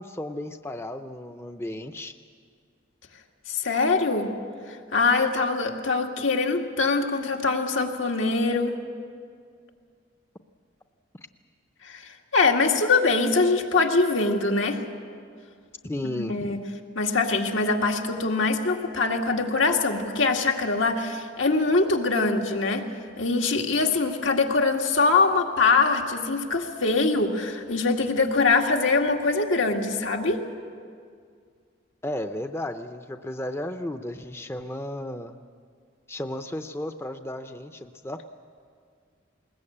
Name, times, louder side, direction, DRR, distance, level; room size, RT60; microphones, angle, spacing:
voice 1, 0.0-2.1 15.8-16.6 32.0-35.4 36.1-38.3, left 1 dB, 15° left, 8 dB, 0.6 m, -34 dB
voice 2, 3.5-4.4 4.7-8.8 11.8-14.8 16.0-16.6 17.0-22.8 23.2-30.4, left 3 dB, 85° left, 2 dB, 2.1 m, -23 dB
20.5 x 20.0 x 8.6 m, 2.1 s
head